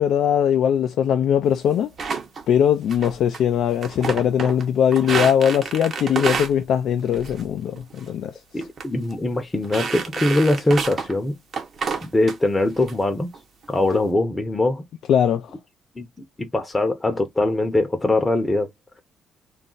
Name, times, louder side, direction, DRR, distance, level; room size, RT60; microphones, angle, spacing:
voice 1, 0.0-1.9 2.5-8.4 15.1-15.5, left 9 dB, 75° left, 0.3 m, -20 dB
sound 1, 2.0-2.4 2.9-3.4 3.7-4.6 4.9-6.5 7.1-7.5 7.8-8.1 8.6-8.8 9.1-9.2 9.6-11.1 11.5-12.4 12.8-12.9 13.3-13.8, right 5 dB, 50° right, 0.8 m, -29 dB
voice 2, 8.5-11.3 12.0-13.3 13.7-14.8 16.0-16.1 16.4-18.7, left 2 dB, 15° left, 0.7 m, -22 dB
2.4 x 2.1 x 3.8 m
cardioid pair, 90°, 0 cm